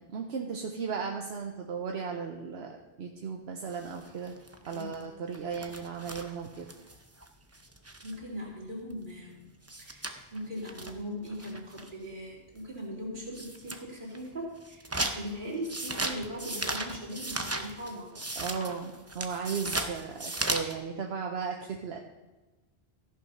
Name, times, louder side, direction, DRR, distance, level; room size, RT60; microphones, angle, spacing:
voice 1, 0.0-4.3 4.7-6.7 18.4-22.0, right 5 dB, 80° right, 2 dB, 1.0 m, -36 dB
sound 1, 3.7-8.2 8.6-8.7 8.9-9.0 9.3-9.4 9.6-12.0 12.6-12.7 13.2-13.8 14.1-20.8, right 2 dB, 15° right, 0.6 m, -36 dB
voice 2, 8.0-9.5 9.8-18.2, equal, 50° right, -4 dB, 3.1 m, -39 dB
14.0 x 5.7 x 5.5 m, 1.1 s
omnidirectional pair, 1.1 m